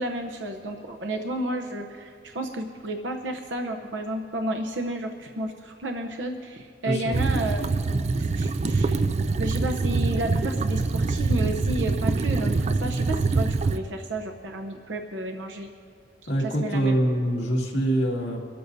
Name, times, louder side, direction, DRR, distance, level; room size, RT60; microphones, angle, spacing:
voice 1, 0.0-9.1 9.4-15.7 16.4-16.9, right 1 dB, 90° right, 4 dB, 0.8 m, -32 dB
voice 2, 6.8-7.2 16.3-18.4, right 1 dB, 70° left, -3 dB, 2.1 m, -24 dB
sound 1, 7.1-13.8, right 3 dB, 40° right, 0.4 m, -24 dB
24.5 x 13.0 x 2.7 m, 2.2 s
head